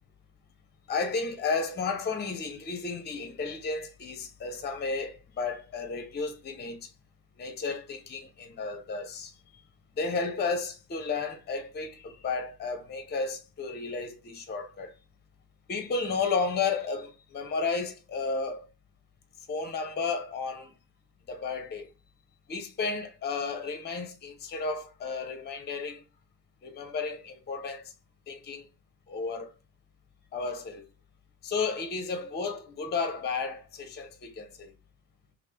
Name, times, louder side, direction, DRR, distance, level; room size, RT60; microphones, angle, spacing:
voice 1, 0.9-6.9 7.4-9.3 10.0-14.9 15.7-18.7 19.5-20.7 21.3-21.9 22.5-26.0 26.6-27.9 28.3-28.6 29.1-29.5 30.3-30.8 31.4-34.7, left 4 dB, 25° left, 0.7 m, -33 dB
2.9 x 2.5 x 3.2 m
hypercardioid pair, 55°, 40 cm